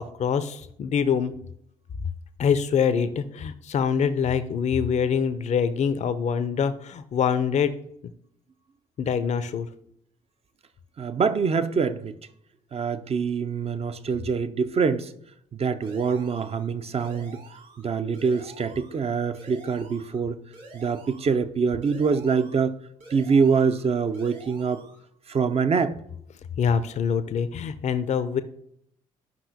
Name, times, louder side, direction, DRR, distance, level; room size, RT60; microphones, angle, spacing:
voice 1, 0.0-1.3 2.4-7.7 9.0-9.7 26.6-28.4, left 7 dB, 45° left, 0.6 m, -24 dB
voice 2, 11.0-12.2 12.7-15.1 15.5-17.4 17.8-20.3 20.7-22.8 23.1-24.8 25.3-25.9, right 5 dB, 35° right, 0.6 m, -24 dB
sound 1, 15.8-16.7 17.0-17.8 18.1-19.0 19.3-20.2 20.5-21.4 21.8-22.7 23.0-23.9 24.1-25.0, right 3 dB, 55° right, 2.1 m, -48 dB
12.0 x 5.6 x 2.7 m
figure-of-eight pair, 40°, 17 cm